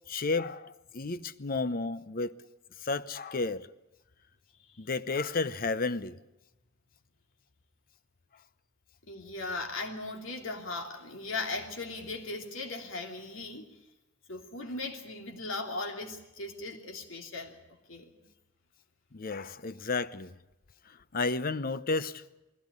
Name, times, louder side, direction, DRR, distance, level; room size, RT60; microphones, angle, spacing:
voice 1, 0.1-2.4 2.8-3.7 4.8-6.2 19.1-20.3 21.1-22.2, left 3 dB, 45° left, 0.8 m, -32 dB
voice 2, 9.1-13.8 14.3-17.6 17.9-18.1, left 3 dB, 80° left, 3.0 m, -38 dB
21.0 x 16.0 x 9.7 m
head